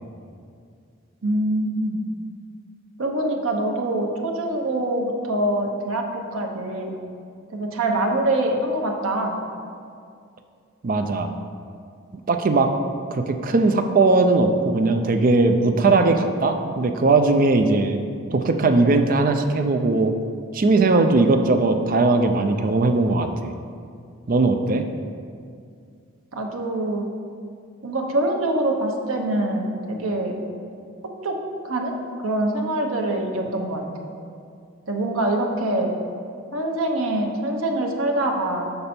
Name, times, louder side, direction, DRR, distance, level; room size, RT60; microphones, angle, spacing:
voice 1, 1.2-2.0 3.0-7.0 7.5-9.4 26.3-27.1 27.8-30.5 31.2-31.4 31.6-31.9 32.2-34.1 34.9-36.0 36.5-38.8, right 1 dB, 80° right, 1 dB, 0.9 m, -24 dB
voice 2, 10.8-11.3 12.3-12.7 13.1-18.0 18.3-20.1 20.5-23.5 24.3-24.8, right 3 dB, 40° right, 6 dB, 0.4 m, -19 dB
6.8 x 5.3 x 4.3 m, 2.3 s
head